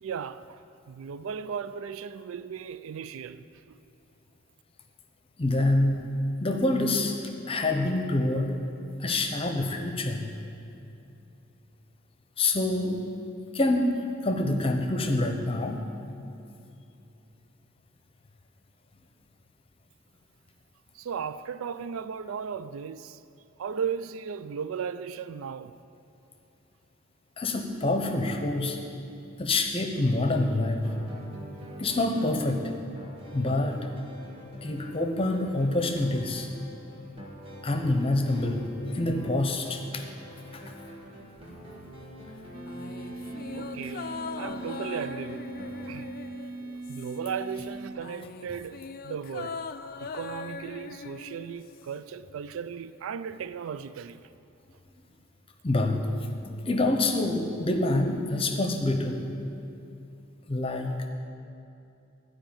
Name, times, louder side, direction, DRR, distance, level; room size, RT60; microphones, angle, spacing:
voice 1, 0.0-3.8 20.9-23.2 23.6-25.7 43.5-45.6 45.9-46.1 46.9-49.6 50.0-54.2, right 7 dB, 80° right, 0.4 m, -36 dB
voice 2, 5.4-6.1 6.4-7.2 7.5-8.6 9.0-10.3 12.4-13.1 13.5-13.9 14.2-15.8 27.4-28.8 29.4-30.9 31.8-32.7 33.3-33.8 34.6-36.5 37.6-38.7 38.9-40.0 40.5-40.7 55.6-56.0 56.5-59.2 60.5-61.1, left 2 dB, 25° left, 0.8 m, -26 dB
sound 1, 30.7-45.9, equal, 25° right, 1.8 m, -46 dB
sound 2, 42.5-47.9, right 2 dB, 40° right, 0.6 m, -40 dB
sound 3, 42.7-47.4 47.7-52.0 52.3-52.4, left 5 dB, 45° left, 0.3 m, -41 dB
13.0 x 5.0 x 8.8 m
head